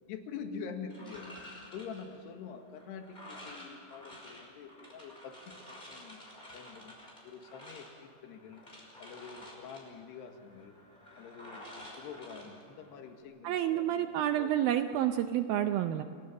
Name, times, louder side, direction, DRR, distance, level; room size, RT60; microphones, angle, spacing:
voice 1, 0.0-6.2 6.5-7.0 7.2-8.6 9.0-10.8 11.2-14.5, left 6 dB, 80° left, 5 dB, 3.7 m, -46 dB
sound 1, 0.9-13.2, left 1 dB, 10° left, 5.3 m, -51 dB
voice 2, 13.4-16.0, right 11 dB, 80° right, 8 dB, 2.1 m, -29 dB
29.5 x 18.0 x 7.2 m, 2.6 s
omnidirectional pair, 4.9 m